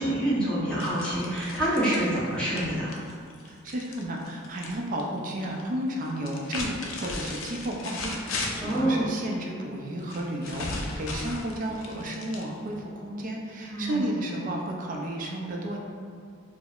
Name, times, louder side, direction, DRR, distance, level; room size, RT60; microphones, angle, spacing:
voice 1, 0.0-2.9 8.6-9.1 13.7-14.0, right 1 dB, 5° left, -10 dB, 0.8 m, -26 dB
sound 1, 0.8-4.7 5.0-5.6 6.2-8.8 10.1-12.8, left 3 dB, 65° left, 0.4 m, -36 dB
voice 2, 3.4-15.8, right 1 dB, 40° right, 0 dB, 0.4 m, -32 dB
4.5 x 2.0 x 2.3 m, 2.2 s
head